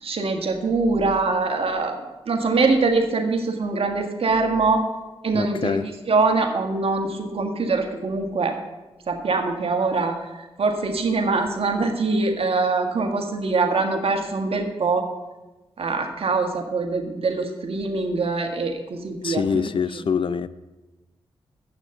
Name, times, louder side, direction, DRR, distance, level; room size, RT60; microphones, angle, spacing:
voice 1, 0.0-2.0 2.3-4.9 5.2-5.8 6.1-8.6 9.1-10.2 10.6-15.1 15.8-19.7, right 3 dB, 60° right, 1.6 m, -23 dB
voice 2, 5.3-5.9 19.2-20.5, left 6 dB, 50° left, 0.5 m, -24 dB
8.4 x 6.2 x 7.8 m
supercardioid pair, 40°, 11 cm